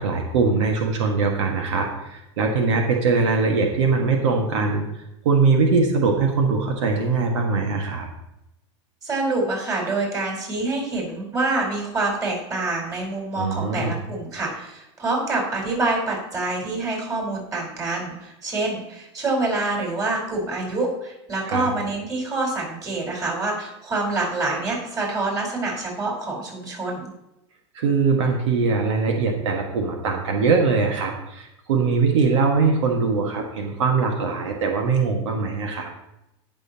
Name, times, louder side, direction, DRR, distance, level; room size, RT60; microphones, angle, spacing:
voice 1, 0.0-4.9 5.2-8.1 13.4-13.9 21.5-21.7 27.7-35.9, right 4 dB, 85° right, 2 dB, 1.7 m, -21 dB
voice 2, 9.0-27.1, right 2 dB, 20° right, -2 dB, 4.2 m, -26 dB
18.0 x 6.4 x 2.9 m, 0.88 s
supercardioid pair, 140°, 15 cm